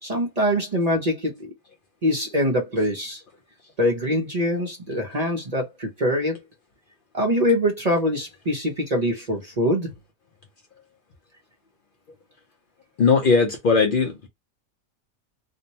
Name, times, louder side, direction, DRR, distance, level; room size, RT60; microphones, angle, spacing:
voice 1, 0.0-1.5 2.0-3.2 3.8-6.4 7.1-9.9, equal, 40° right, 0.7 m, -23 dB
voice 2, 13.0-14.3, left 4 dB, 55° left, 0.7 m, -19 dB
2.6 x 2.1 x 2.8 m
omnidirectional pair, 1.3 m